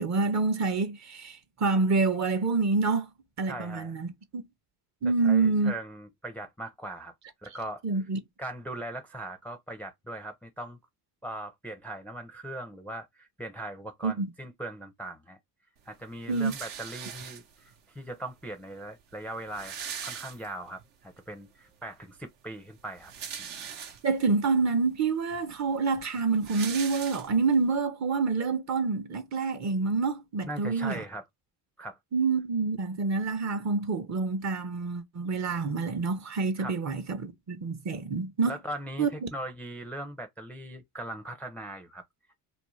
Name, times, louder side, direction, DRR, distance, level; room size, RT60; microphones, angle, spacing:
voice 1, 0.0-3.1 3.4-4.4 5.0-5.7 7.8-8.2 14.0-14.3 16.3-16.5 24.0-31.0 32.1-38.5 39.0-39.3, right 4 dB, 40° right, 0.7 m, -27 dB
voice 2, 3.5-3.9 5.0-7.1 7.4-7.8 8.4-10.8 11.2-15.4 15.9-19.8 20.0-23.1 23.4-23.5 30.4-31.3 31.8-32.0 36.6-36.8 38.5-42.0, right 1 dB, 5° left, 0.4 m, -40 dB
sound 1, 16.3-17.7 18.6-18.7 18.9-19.0 19.3-20.8 21.3-21.4 22.8-24.3 24.9-25.0 25.3-27.7, right 7 dB, 75° right, 0.9 m, -41 dB
2.5 x 2.1 x 3.0 m
supercardioid pair, 80°, 45 cm